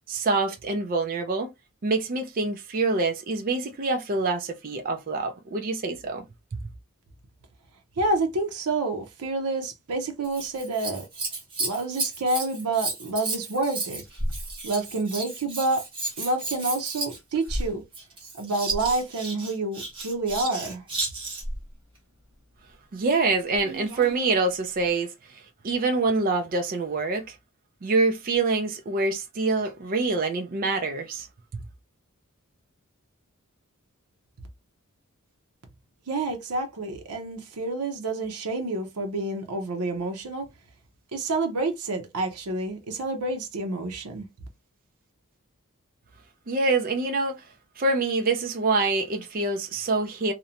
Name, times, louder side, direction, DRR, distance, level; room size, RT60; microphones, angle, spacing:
voice 1, 0.1-1.5 1.8-6.2 22.9-25.1 25.6-27.4 27.8-31.3 31.5-31.6 46.5-47.4 47.8-50.3, right 3 dB, 40° right, 0.4 m, -25 dB
voice 2, 8.0-11.1 11.6-14.0 14.6-15.8 16.2-17.8 18.4-20.8 36.1-40.5 41.1-44.2, right 2 dB, 85° right, 0.6 m, -28 dB
Scissors, 10.2-21.6 23.5-24.2 24.9-25.0, right 2 dB, 25° right, 0.9 m, -33 dB
2.5 x 2.1 x 2.7 m
head